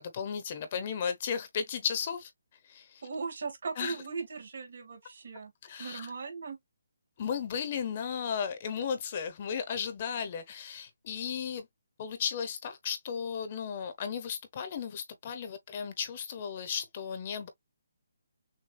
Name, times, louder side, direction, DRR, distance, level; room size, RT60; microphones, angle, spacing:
voice 1, 0.0-2.3 2.7-3.0 3.8-4.0 5.6-6.1 7.2-11.7 12.0-17.5, left 7 dB, 30° left, 0.9 m, -35 dB
voice 2, 3.0-5.5 5.8-6.6, right 4 dB, 55° right, 2.7 m, -38 dB
6.5 x 2.3 x 3.2 m
hypercardioid pair, 170°, 0 cm